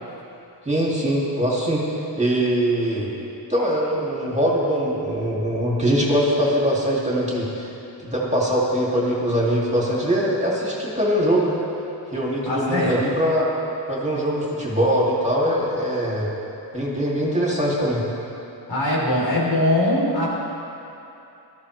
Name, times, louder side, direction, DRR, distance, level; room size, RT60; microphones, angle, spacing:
voice 1, 0.7-1.8 2.2-3.1 3.5-7.7 8.0-11.6 12.1-13.4 13.9-16.3 16.7-18.0, equal, 15° right, -5 dB, 2.5 m, -22 dB
voice 2, 12.5-13.0 18.7-20.3, left 1 dB, 70° left, -5 dB, 3.7 m, -21 dB
18.5 x 13.0 x 3.3 m, 2.8 s
wide cardioid pair, 100°, 46 cm